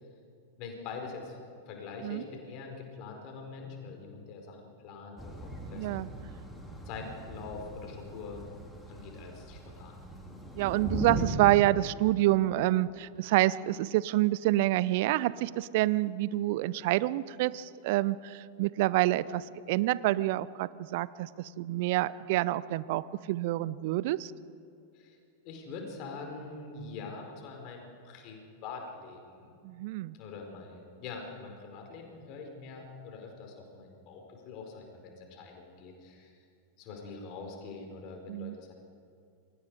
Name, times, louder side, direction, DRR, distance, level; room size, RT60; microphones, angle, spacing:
voice 1, 0.6-1.4 1.7-6.1 6.8-8.4 8.9-10.0 24.9-25.2 25.4-29.5 30.1-36.4 36.8-38.7, left 4 dB, 40° left, 2 dB, 4.8 m, -44 dB
Thunder / Rain, 5.2-11.3, equal, 5° left, 3.7 m, -40 dB
voice 2, 5.7-6.1 10.6-24.3 29.6-30.2 38.3-38.6, right 16 dB, 50° right, 19 dB, 0.6 m, -28 dB
27.5 x 24.0 x 5.0 m, 2.4 s
figure-of-eight pair, 90°, 0 cm